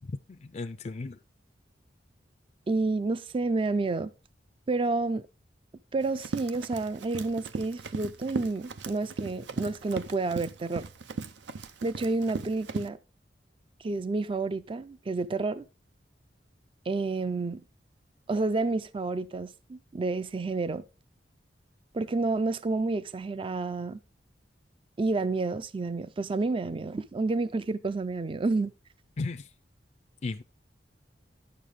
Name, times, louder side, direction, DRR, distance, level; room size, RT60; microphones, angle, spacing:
voice 1, 0.0-1.2 29.2-29.5 30.2-30.4, left 3 dB, 40° left, 0.4 m, -35 dB
voice 2, 2.7-4.1 4.7-5.3 5.9-10.9 11.8-13.0 13.8-15.6 16.9-17.6 18.3-20.8 21.9-24.0 25.0-28.7, right 3 dB, 30° right, 0.4 m, -29 dB
Run, 6.0-12.9, right 4 dB, 80° right, 0.6 m, -38 dB
9.9 x 6.7 x 3.6 m
head